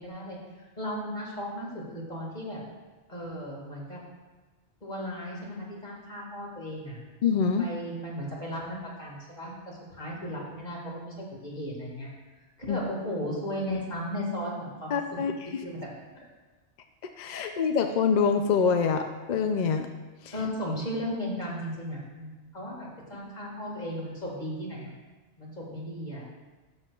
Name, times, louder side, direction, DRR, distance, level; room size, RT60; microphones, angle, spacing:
voice 1, 0.0-2.6 3.1-4.0 4.8-7.0 7.6-12.1 12.7-15.0 15.6-15.8 20.3-24.9 25.4-26.2, equal, 40° left, -3 dB, 2.0 m, -35 dB
voice 2, 7.2-7.7 12.7-12.8 14.9-15.3 17.2-19.0 19.3-19.9 20.2-20.3, left 6 dB, 60° left, 5 dB, 0.4 m, -25 dB
12.0 x 6.3 x 2.4 m, 1.2 s
omnidirectional pair, 1.2 m